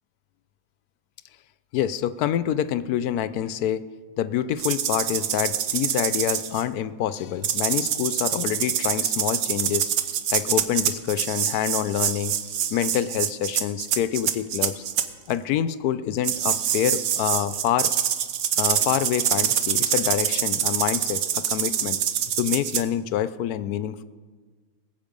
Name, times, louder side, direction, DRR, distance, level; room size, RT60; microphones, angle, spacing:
voice 1, 1.7-3.8 4.2-9.9 10.3-12.3 12.7-14.8 15.3-17.9 18.6-22.0 22.4-24.0, left 10 dB, 85° left, 15 dB, 1.1 m, -26 dB
sound 1, 4.6-6.6 7.4-15.1 16.2-22.8, right 9 dB, 80° right, 1.2 m, -25 dB
20.0 x 7.9 x 5.3 m, 1.5 s
omnidirectional pair, 1.6 m